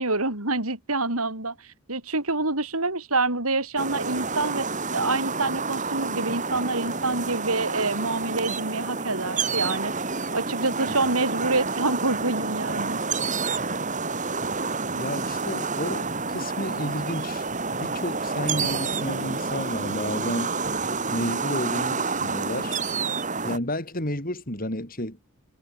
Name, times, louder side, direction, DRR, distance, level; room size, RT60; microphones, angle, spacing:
voice 1, 0.0-1.5 1.9-13.0, right 3 dB, 80° right, 6.7 m, -27 dB
sound 1, 3.8-23.6, right 4 dB, 35° right, 6.7 m, -29 dB
voice 2, 14.9-20.6 21.1-22.8 23.4-25.2, left 1 dB, 40° left, 6.2 m, -31 dB
head